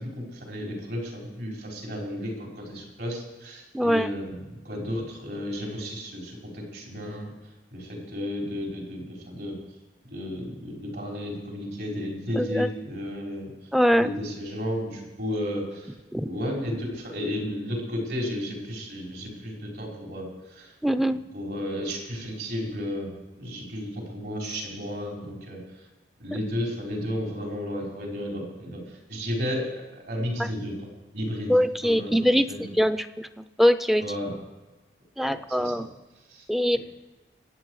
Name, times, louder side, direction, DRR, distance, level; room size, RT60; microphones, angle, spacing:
voice 1, 0.0-7.3 7.7-9.6 10.1-20.7 21.1-23.1 23.4-25.9 26.2-29.6 30.0-31.5 31.8-32.7 34.0-34.3 35.2-35.8 36.3-36.4, equal, 70° right, -1 dB, 5.0 m, -33 dB
voice 2, 3.7-4.1 12.4-12.7 13.7-14.1 16.1-16.3 20.8-21.2 31.5-32.5 32.8-33.3 33.6-34.0 35.2-35.9 36.5-36.8, equal, ahead, 11 dB, 0.4 m, -22 dB
25.0 x 8.7 x 4.8 m, 1.2 s
head